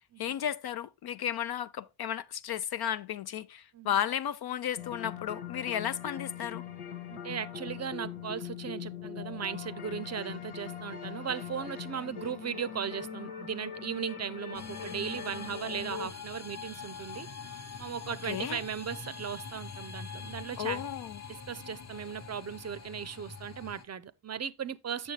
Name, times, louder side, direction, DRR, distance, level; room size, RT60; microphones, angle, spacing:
voice 1, 0.2-6.6 18.1-18.6 20.6-21.2, left 10 dB, 55° left, 0.5 m, -34 dB
sound 1, 4.8-16.1, left 8 dB, 90° left, 1.7 m, -41 dB
voice 2, 7.1-17.3 17.8-20.8 21.3-25.1, right 7 dB, 35° right, 0.5 m, -37 dB
sound 2, 14.5-23.8, left 5 dB, 35° left, 0.9 m, -44 dB
7.6 x 6.6 x 3.2 m
cardioid pair, 85°, 48 cm